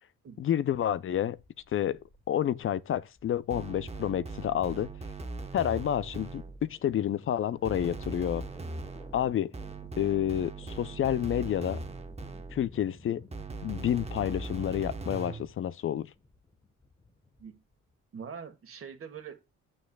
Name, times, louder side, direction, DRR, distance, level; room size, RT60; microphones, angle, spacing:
voice 1, 0.4-1.4 1.7-2.0 2.3-4.9 5.5-8.4 9.1-9.5 10.0-11.8 12.5-13.2 13.6-16.1, left 10 dB, 45° left, 0.4 m, -29 dB
sound 1, 1.1-18.1, left 3 dB, 15° left, 1.1 m, -56 dB
sound 2, 3.5-6.8 7.7-12.8 13.3-15.5, right 3 dB, 20° right, 1.0 m, -40 dB
voice 2, 18.1-19.4, right 6 dB, 50° right, 1.5 m, -43 dB
9.6 x 8.7 x 2.3 m
cardioid pair, 90°, 30 cm